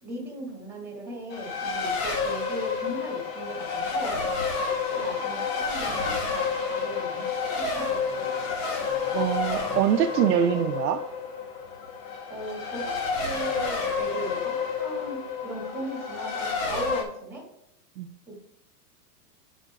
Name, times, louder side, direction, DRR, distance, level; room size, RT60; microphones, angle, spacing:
voice 1, 0.0-4.2 4.8-8.3 12.3-17.5 18.3-18.4, right 1 dB, 5° right, -2 dB, 2.5 m, -38 dB
Race car auto racing, 1.3-17.0, left 5 dB, 50° left, 1.6 m, -30 dB
voice 2, 9.1-11.0 18.0-18.1, right 10 dB, 75° right, 4 dB, 0.6 m, -24 dB
10.0 x 5.0 x 2.4 m, 0.77 s
hypercardioid pair, 135°, 48 cm